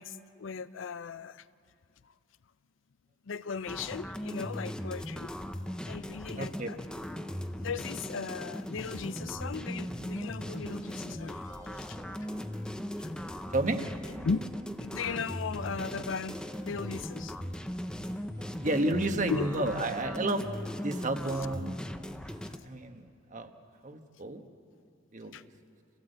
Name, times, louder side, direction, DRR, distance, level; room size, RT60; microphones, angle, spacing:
voice 1, 0.0-1.5 3.3-5.3 5.7-6.8 7.6-11.4 11.7-12.0 13.0-13.1 14.2-14.4 14.8-17.3 19.3-19.5 22.4-22.5 25.3-25.4, left 5 dB, 70° left, 15 dB, 0.5 m, -37 dB
sound 1, 3.7-22.6, equal, 5° left, 0.7 m, -38 dB
voice 2, 6.4-6.7 13.5-13.8 18.6-21.8 22.2-23.5 23.8-24.4 25.1-25.3, right 2 dB, 40° right, 6 dB, 1.3 m, -31 dB
sound 2, 9.0-19.8, right 1 dB, 20° right, 1.0 m, -51 dB
29.0 x 16.5 x 8.0 m, 2.4 s
head